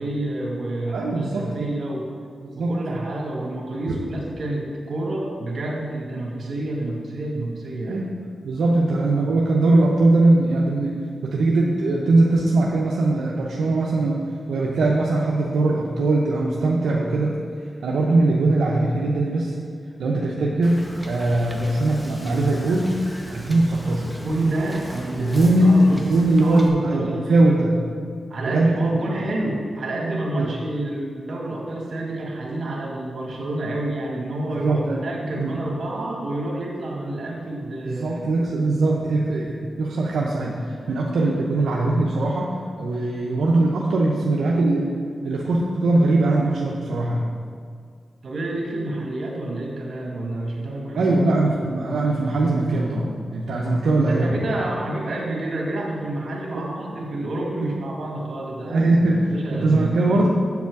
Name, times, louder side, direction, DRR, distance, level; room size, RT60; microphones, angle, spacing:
voice 1, 0.0-2.1 2.6-8.0 24.2-26.0 26.4-27.3 28.3-38.3 48.2-51.1 54.0-58.9 59.3-60.2, right 1 dB, 70° right, -1 dB, 1.8 m, -28 dB
voice 2, 0.9-1.7 2.4-2.8 3.9-4.0 7.9-8.1 8.4-14.2 14.5-17.4 17.8-19.6 20.0-22.9 23.3-24.2 25.2-27.8 28.4-28.8 30.4-30.5 34.6-35.0 35.4-35.5 37.8-44.9 45.2-47.3 50.9-54.4 56.5-56.7 57.6-57.7 58.7-60.3, right 2 dB, 90° right, -3 dB, 0.7 m, -21 dB
Wind / Boat Water vehicle, 20.6-26.7, equal, 10° left, 1.3 m, -38 dB
7.7 x 7.1 x 4.7 m, 2.2 s
cardioid pair, 65°, 0 cm